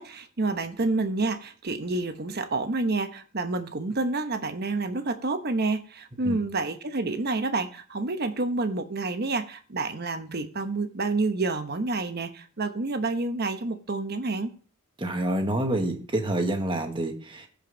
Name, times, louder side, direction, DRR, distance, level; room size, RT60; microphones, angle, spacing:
voice 1, 0.0-14.5, right 3 dB, 50° right, 9 dB, 0.9 m, -29 dB
voice 2, 15.0-17.5, right 1 dB, 25° right, 4 dB, 1.4 m, -27 dB
15.5 x 5.2 x 3.9 m, 0.42 s
head